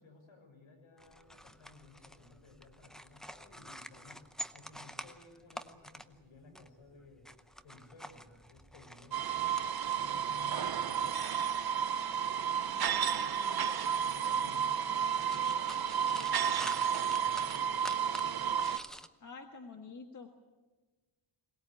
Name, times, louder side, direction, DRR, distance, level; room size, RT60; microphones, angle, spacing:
voice 1, 0.0-7.3 7.6-9.3 9.9-11.5 12.7-18.4, left 3 dB, 70° left, 3 dB, 6.4 m, -57 dB
sound 1, 1.0-19.1, equal, ahead, 0.7 m, -50 dB
sound 2, 9.1-18.8, right 8 dB, 50° right, 0.9 m, -32 dB
voice 2, 12.6-13.5 19.2-20.3, left 4 dB, 35° left, 4 dB, 1.6 m, -50 dB
22.5 x 19.5 x 8.6 m, 1.3 s
wide cardioid pair, 150°, 50 cm